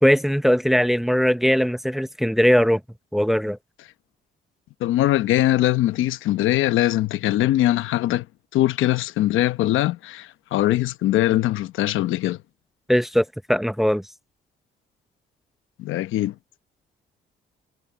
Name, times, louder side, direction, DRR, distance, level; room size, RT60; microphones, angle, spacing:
voice 1, 0.0-2.8 3.1-3.6 12.9-14.0, equal, ahead, 0.8 m, -20 dB
voice 2, 4.8-8.2 8.5-12.4 15.8-16.3, left 14 dB, 85° left, 0.9 m, -21 dB
cardioid pair, 90°, 20 cm